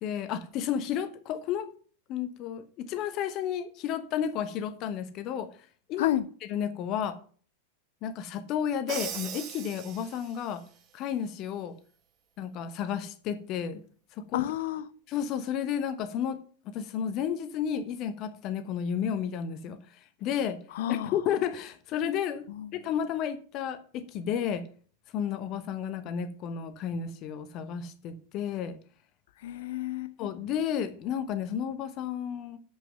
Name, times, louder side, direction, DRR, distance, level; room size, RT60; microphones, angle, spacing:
voice 1, 0.0-1.7 2.1-5.5 5.9-6.1 6.5-7.2 8.0-10.6 10.9-11.8 12.4-13.8 14.2-14.5 15.1-16.4 16.6-19.8 20.2-20.6 20.9-22.5 22.7-24.7 25.1-28.8 30.2-32.6, left 8 dB, 40° left, 1.1 m, -32 dB
Crash cymbal, 8.9-10.6, right 9 dB, 35° right, 1.2 m, -39 dB
voice 2, 14.3-14.9 20.7-21.1 22.5-22.7 29.4-30.1, left 13 dB, 55° left, 0.6 m, -30 dB
7.5 x 6.0 x 6.0 m
figure-of-eight pair, 90°, 0 cm